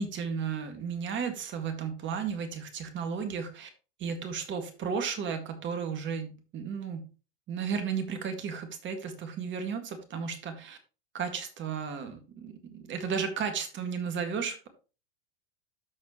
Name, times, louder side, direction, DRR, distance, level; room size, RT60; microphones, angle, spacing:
voice 1, 0.0-3.7 4.0-7.1 7.5-10.8 11.1-14.7, right 6 dB, 35° right, 7 dB, 1.8 m, -34 dB
13.0 x 4.3 x 3.0 m, 0.33 s
hypercardioid pair, 100°, 33 cm